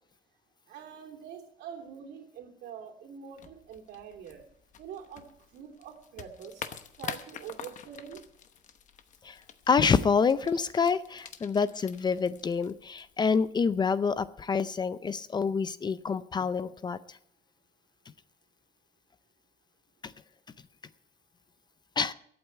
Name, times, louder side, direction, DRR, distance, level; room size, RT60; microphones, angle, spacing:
voice 1, 0.7-4.4 4.8-5.2 5.5-6.6 7.0-8.2 10.8-10.9, right 8 dB, 75° right, 2 dB, 2.9 m, -45 dB
sound 1, 3.3-13.6, left 8 dB, 45° left, 1.0 m, -47 dB
voice 2, 9.7-17.2 22.0-22.1, left 5 dB, 25° left, 15 dB, 0.5 m, -27 dB
23.0 x 8.7 x 4.6 m, 0.70 s
cardioid pair, 145°, 17 cm